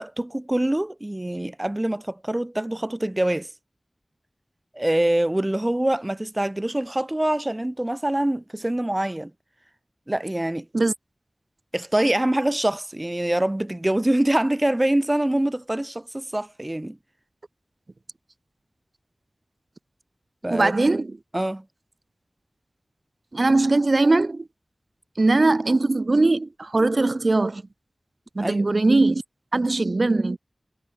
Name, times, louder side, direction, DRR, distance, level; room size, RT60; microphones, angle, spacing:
voice 1, 0.0-3.5 4.7-9.3 10.1-10.7 11.7-17.0 20.4-20.7 21.3-21.6 28.4-28.7, right 1 dB, 20° right, 2.4 m, -24 dB
voice 2, 20.5-21.1 23.3-24.4 25.2-27.6 28.4-29.2 29.5-30.4, right 2 dB, 55° right, 2.4 m, -20 dB
wide cardioid pair, 70°, 0 cm